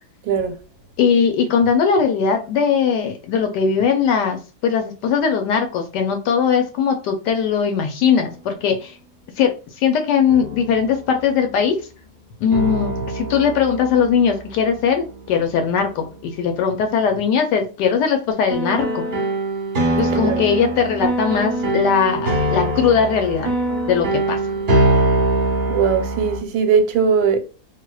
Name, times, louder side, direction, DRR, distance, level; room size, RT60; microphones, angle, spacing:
voice 1, 0.3-0.6 20.1-20.4 25.7-27.4, right 6 dB, 90° right, 1.4 m, -19 dB
voice 2, 1.0-8.9 9.4-9.5 9.8-11.8 12.4-19.1 20.0-23.5 23.9-24.4, left 6 dB, 70° left, 1.1 m, -19 dB
sound 1, 8.2-8.3 10.3-11.3 12.5-15.8 18.5-26.4, right 2 dB, 40° right, 1.1 m, -23 dB
3.4 x 2.7 x 2.3 m
omnidirectional pair, 2.1 m